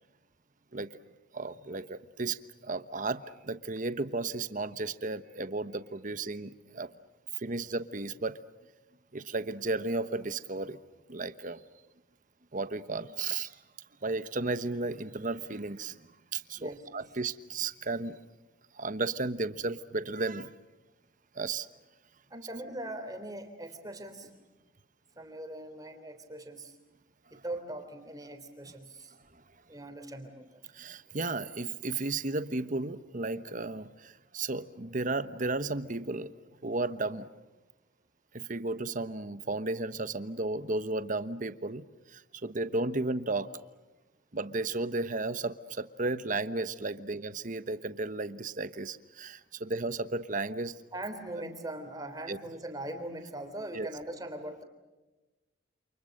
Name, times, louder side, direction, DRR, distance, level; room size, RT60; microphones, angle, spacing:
voice 1, 1.3-6.9 7.4-8.4 9.1-10.8 11.1-11.6 12.5-13.5 14.0-18.2 18.7-20.5 21.3-21.7 30.7-36.3 36.6-37.3 38.3-43.5 44.3-50.7 52.3-52.4 53.7-53.9, right 3 dB, 40° right, 12 dB, 1.1 m, -34 dB
voice 2, 22.3-24.4 25.2-26.7 27.3-29.1 29.7-30.6 50.9-54.6, right 1 dB, 20° right, 6 dB, 3.4 m, -41 dB
29.0 x 28.5 x 6.6 m, 1.1 s
head